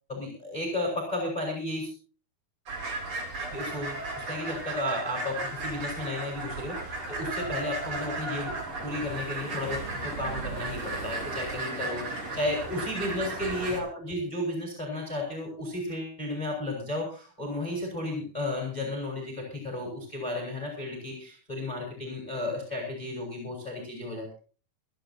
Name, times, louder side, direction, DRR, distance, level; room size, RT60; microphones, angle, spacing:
voice 1, 0.1-1.9 3.5-4.0 4.3-8.5 8.8-24.3, left 1 dB, 10° left, 1 dB, 5.4 m, -33 dB
sound 1, 2.7-13.8, right 3 dB, 40° right, 4.3 m, -35 dB
27.0 x 11.0 x 2.8 m, 0.39 s
omnidirectional pair, 4.2 m